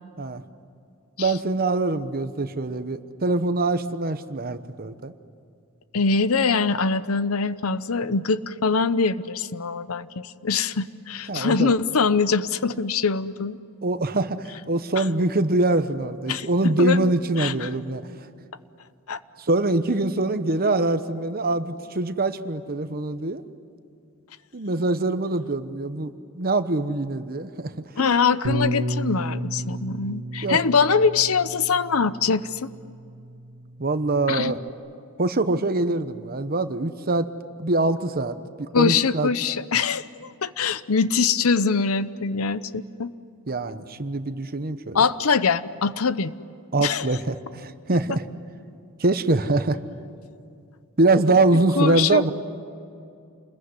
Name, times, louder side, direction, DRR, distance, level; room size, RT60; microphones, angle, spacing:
voice 1, 1.2-5.1 11.3-11.8 13.8-18.0 19.4-23.4 24.5-27.9 30.4-30.6 33.8-34.6 35.2-37.3 37.6-39.3 43.5-45.0 46.7-48.2 49.0-49.8 51.0-52.3, right 2 dB, 45° right, 11 dB, 1.1 m, -24 dB
voice 2, 5.9-13.6 15.0-15.1 16.3-16.5 16.8-17.1 17.4-17.7 19.1-19.2 28.0-32.7 34.3-34.5 38.7-43.1 44.9-46.3 46.8-47.1 51.8-52.3, left 5 dB, 80° left, 15 dB, 0.8 m, -23 dB
Bass guitar, 28.4-34.7, right 1 dB, 80° right, 2.1 m, -33 dB
28.5 x 21.5 x 9.8 m, 2.4 s
head